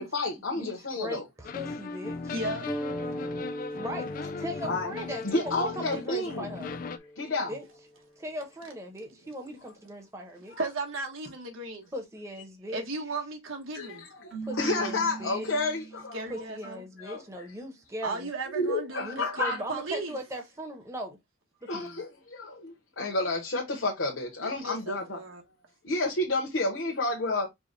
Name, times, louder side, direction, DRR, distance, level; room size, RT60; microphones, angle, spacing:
voice 1, 0.0-1.2 4.6-4.9 5.2-6.5 7.2-7.5 13.7-16.4 17.0-17.5 18.5-19.6 21.7-25.2 25.8-27.5, left 2 dB, 70° left, 1.0 m, -30 dB
voice 2, 0.6-2.3 3.7-6.7 7.5-7.6 8.2-10.5 11.9-12.8 14.4-15.5 16.3-18.3 19.0-21.2 21.6-21.9, equal, 15° right, 1.0 m, -39 dB
sound 1, 1.4-7.0, left 4 dB, 45° left, 0.4 m, -38 dB
voice 3, 2.3-2.7 3.0-3.1 10.6-11.9 12.7-14.1 16.1-16.8 18.0-20.2 24.4-25.4, right 3 dB, 85° right, 1.2 m, -35 dB
sound 2, 2.7-7.8, equal, 5° left, 0.7 m, -40 dB
Keyboard (musical), 14.3-16.3, right 5 dB, 65° right, 2.2 m, -40 dB
4.8 x 2.3 x 3.9 m
head